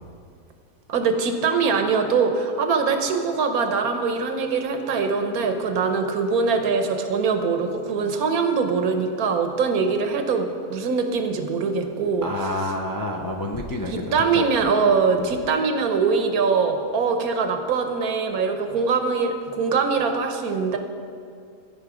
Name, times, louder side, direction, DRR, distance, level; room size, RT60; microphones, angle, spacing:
voice 1, 0.9-12.3 13.9-20.8, right 5 dB, 85° right, 6 dB, 1.3 m, -23 dB
voice 2, 12.2-14.5 15.2-15.3, left 1 dB, 35° left, 0 dB, 0.3 m, -29 dB
15.0 x 5.2 x 4.9 m, 2.3 s
omnidirectional pair, 1.5 m